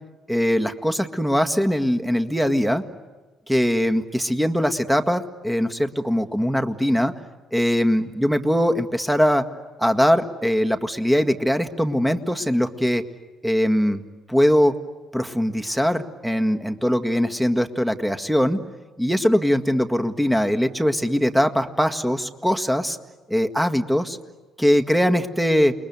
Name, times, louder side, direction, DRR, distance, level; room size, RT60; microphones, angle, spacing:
voice 1, 0.3-2.8 3.5-7.1 7.5-9.4 9.8-13.0 13.4-14.0 14.3-14.7 15.1-18.6 19.0-23.0 23.3-24.2 24.6-25.7, equal, 5° right, 8 dB, 1.8 m, -21 dB
29.5 x 21.5 x 9.5 m, 1.3 s
figure-of-eight pair, 50°, 0 cm